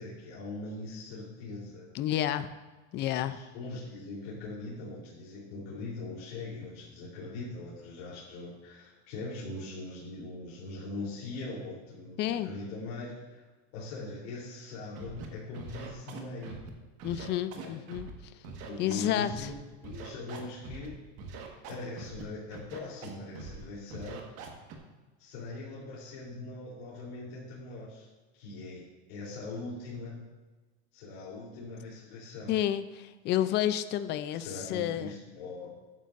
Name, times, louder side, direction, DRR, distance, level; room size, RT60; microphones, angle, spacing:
voice 1, 0.0-1.9 3.2-13.4 13.7-16.7 17.6-17.8 18.6-21.0 21.7-24.3 25.2-28.1 28.3-30.2 30.9-32.5 34.3-35.8, left 2 dB, 65° left, -7 dB, 3.5 m, -41 dB
voice 2, 1.9-2.5 2.9-3.4 12.2-12.5 17.0-18.4 18.8-19.5 32.5-35.1, left 11 dB, 30° left, 12 dB, 0.5 m, -30 dB
Scratching (performance technique), 14.9-15.3 15.5-16.7 17.0-18.1 18.4-19.5 19.8-20.9 21.2-22.2 22.5-23.1 23.3-23.6 23.9-24.7, right 5 dB, 45° right, 1.6 m, -43 dB
13.5 x 9.5 x 2.6 m, 1.2 s
supercardioid pair, 140°, 33 cm